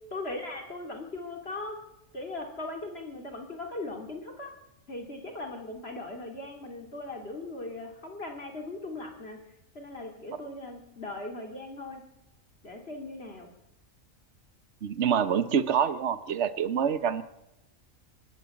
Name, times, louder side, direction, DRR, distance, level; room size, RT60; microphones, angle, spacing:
voice 1, 0.1-1.8 2.1-4.5 4.9-9.4 9.7-12.0 12.6-13.5, left 2 dB, 50° left, 3 dB, 3.2 m, -39 dB
voice 2, 14.8-17.2, right 7 dB, 60° right, 12 dB, 1.3 m, -26 dB
25.5 x 12.0 x 8.6 m, 0.89 s
omnidirectional pair, 1.4 m